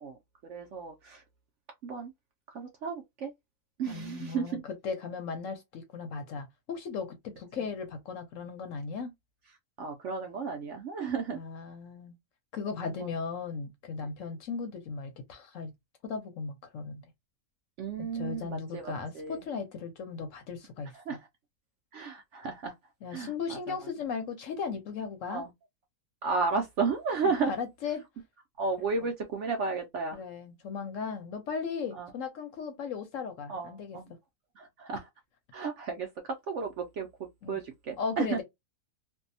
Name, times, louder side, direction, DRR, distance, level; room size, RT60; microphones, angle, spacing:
voice 1, 0.4-1.2 1.8-2.1 2.5-3.3 3.8-4.6 7.6-7.7 9.8-11.4 12.9-13.1 17.8-19.4 21.1-21.2 21.9-22.7 23.1-23.6 25.3-25.5 26.2-27.5 28.6-30.2 32.0-32.1 33.5-34.1 34.6-35.1 35.5-38.4, right 4 dB, 65° right, 0.7 m, -33 dB
voice 2, 3.9-9.1 11.3-12.2 12.5-15.7 16.0-17.0 18.0-21.2 23.0-25.4 27.2-28.0 29.0-29.1 30.1-34.0 37.4-37.6 38.0-38.4, left 5 dB, 65° left, 0.8 m, -37 dB
2.6 x 2.2 x 2.5 m
omnidirectional pair, 1.7 m